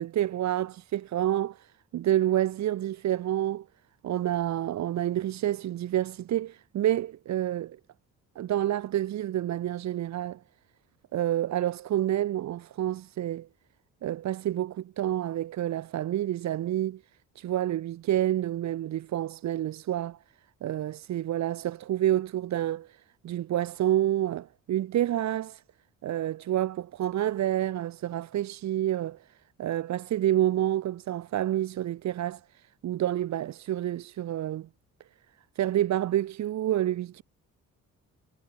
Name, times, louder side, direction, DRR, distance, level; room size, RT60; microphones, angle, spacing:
voice 1, 0.0-3.7 4.0-7.8 8.3-10.4 11.1-13.5 14.0-17.0 17.3-20.2 20.6-25.6 26.0-29.3 29.6-34.7 35.5-37.2, right 12 dB, 65° right, 1.1 m, -28 dB
cardioid pair, 90°, 30 cm